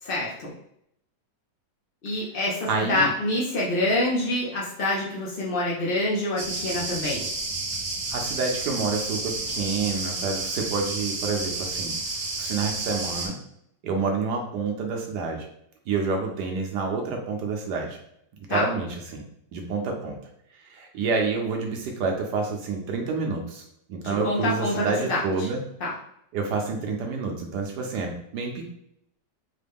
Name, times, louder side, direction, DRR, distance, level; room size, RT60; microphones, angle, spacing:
voice 1, 0.0-0.5 2.0-7.3 18.5-18.6 24.2-25.2 25.8-25.9, left 1 dB, 65° left, -5 dB, 0.5 m, -26 dB
voice 2, 2.7-3.1 8.1-11.9 12.4-13.4 13.8-15.5 15.9-18.0 18.5-19.2 19.5-20.2 20.6-25.6 26.3-28.7, right 4 dB, 70° right, 2 dB, 1.2 m, -28 dB
sound 1, 6.4-13.3, right 3 dB, 45° right, 0.9 m, -31 dB
3.9 x 2.2 x 3.4 m, 0.73 s
omnidirectional pair, 1.9 m